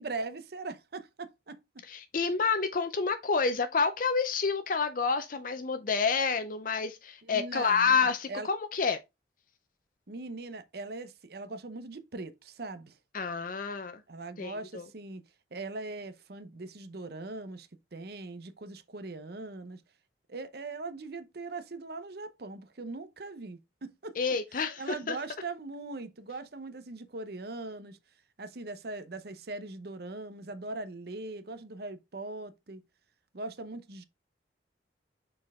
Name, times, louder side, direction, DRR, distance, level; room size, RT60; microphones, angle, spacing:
voice 1, 0.0-1.6 7.2-8.5 10.1-13.0 14.1-15.2 15.5-19.8 20.3-24.2 24.5-28.0 28.4-32.8 33.3-34.0, right 3 dB, 60° right, 0.8 m, -40 dB
voice 2, 1.9-9.0 13.1-14.0 14.4-14.8 24.2-25.2, left 5 dB, 50° left, 0.6 m, -29 dB
6.5 x 4.4 x 3.5 m
head